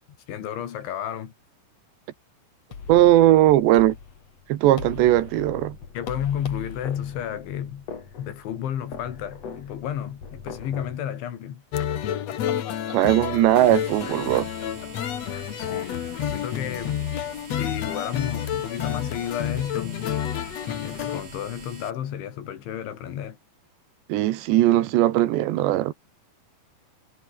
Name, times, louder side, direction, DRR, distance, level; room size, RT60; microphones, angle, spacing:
voice 1, 0.3-1.3 5.9-7.9 8.2-11.6 15.6-16.0 16.3-17.0 17.5-20.0 20.8-23.4, left 10 dB, 85° left, 5.1 m, -32 dB
sound 1, 2.7-11.0, left 5 dB, 40° left, 4.0 m, -40 dB
voice 2, 2.9-4.0 4.5-5.8 12.9-14.5 24.1-25.9, right 14 dB, 75° right, 3.4 m, -19 dB
sound 2, 11.7-21.2, left 10 dB, 65° left, 1.7 m, -29 dB
sound 3, 13.6-21.9, right 4 dB, 35° right, 4.5 m, -45 dB
omnidirectional pair, 5.2 m